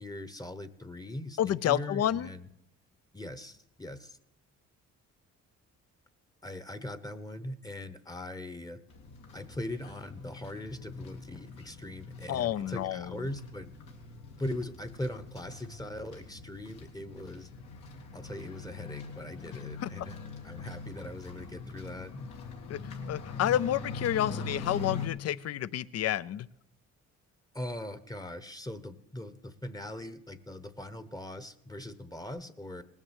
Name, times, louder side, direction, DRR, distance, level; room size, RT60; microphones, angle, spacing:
voice 1, 0.0-2.5 3.1-4.2 6.4-8.8 9.3-13.7 14.4-17.5 18.1-20.2 20.4-22.3 27.5-32.8, left 1 dB, 10° left, 12 dB, 0.9 m, -40 dB
voice 2, 1.4-2.3 12.3-13.3 19.5-20.1 22.7-26.5, left 11 dB, 55° left, 19 dB, 0.5 m, -30 dB
sound 1, 8.9-25.1, left 4 dB, 85° left, 2.5 m, -43 dB
19.0 x 7.3 x 8.1 m, 0.80 s
cardioid pair, 90°, 30 cm